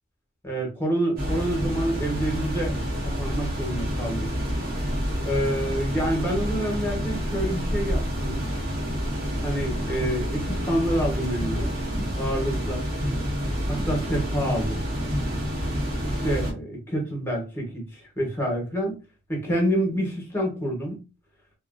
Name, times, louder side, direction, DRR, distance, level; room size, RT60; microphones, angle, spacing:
voice 1, 0.4-2.8 3.0-4.3 5.2-8.4 9.4-11.8 12.1-12.9 13.7-14.8 16.0-19.0 19.3-21.0, equal, 10° left, 0.9 m, -27 dB
sound 1, 1.2-16.5, equal, 50° right, 0.9 m, -28 dB
sound 2, 11.2-12.6 13.0-16.1, left 1 dB, 80° right, 0.9 m, -35 dB
2.4 x 2.1 x 2.4 m
head